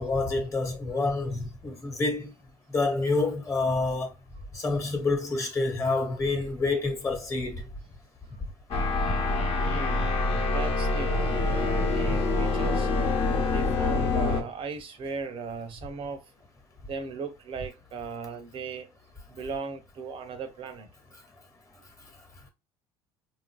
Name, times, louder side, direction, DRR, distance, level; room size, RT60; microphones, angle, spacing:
voice 1, 0.0-2.3 2.7-4.1 4.5-7.6 9.1-9.2, left 3 dB, 25° left, 1.2 m, -28 dB
sound 1, 8.7-14.4, left 3 dB, 55° left, 0.9 m, -26 dB
voice 2, 9.6-12.9 13.4-16.2 16.9-18.9 19.3-20.9, right 5 dB, 55° right, 0.7 m, -37 dB
4.0 x 2.5 x 2.2 m
supercardioid pair, 85°, 11 cm